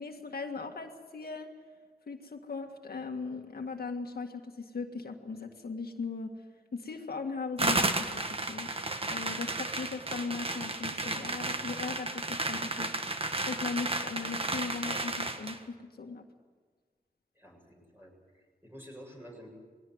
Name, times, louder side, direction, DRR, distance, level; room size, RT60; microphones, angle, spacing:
voice 1, 0.0-1.5 2.1-6.3 6.7-8.7 9.1-16.2, left 4 dB, 75° left, 3 dB, 1.8 m, -38 dB
sound 1, 7.6-15.6, right 2 dB, 35° right, 1.6 m, -33 dB
voice 2, 17.3-19.5, equal, 15° right, 0 dB, 7.5 m, -50 dB
21.0 x 17.5 x 9.5 m, 1.5 s
wide cardioid pair, 95°, 16 cm